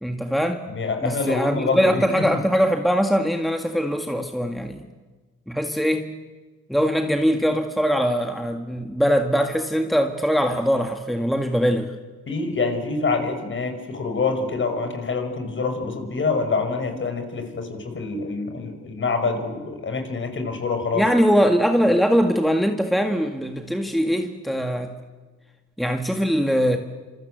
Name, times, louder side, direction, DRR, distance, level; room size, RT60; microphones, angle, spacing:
voice 1, 0.0-0.7 1.0-4.9 5.5-6.1 6.7-11.9 20.9-24.9 25.8-26.8, equal, ahead, 5 dB, 1.8 m, -21 dB
voice 2, 0.7-2.4 12.3-21.0, left 4 dB, 40° left, 7 dB, 5.8 m, -26 dB
27.5 x 27.0 x 8.0 m, 1.4 s
cardioid pair, 90°, 30 cm